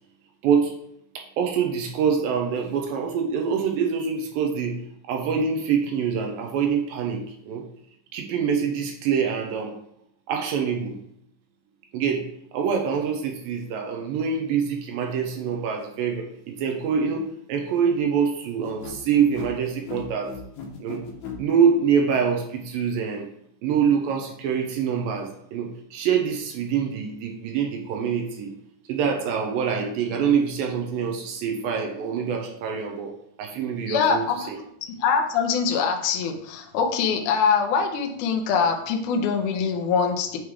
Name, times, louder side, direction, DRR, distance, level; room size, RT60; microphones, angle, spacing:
voice 1, 0.4-0.7 1.2-4.8 5.1-7.7 8.1-9.8 10.3-11.0 11.9-12.3 12.5-20.4 20.8-21.0 21.4-23.3 23.6-28.5 28.9-33.1 33.4-34.6, right 6 dB, 85° right, 2 dB, 2.1 m, -25 dB
sound 1, 18.6-21.4, left 6 dB, 75° left, 3.0 m, -37 dB
voice 2, 33.9-34.5 35.0-40.4, left 6 dB, 90° left, 2 dB, 1.7 m, -23 dB
9.3 x 3.2 x 3.5 m, 0.72 s
omnidirectional pair, 4.7 m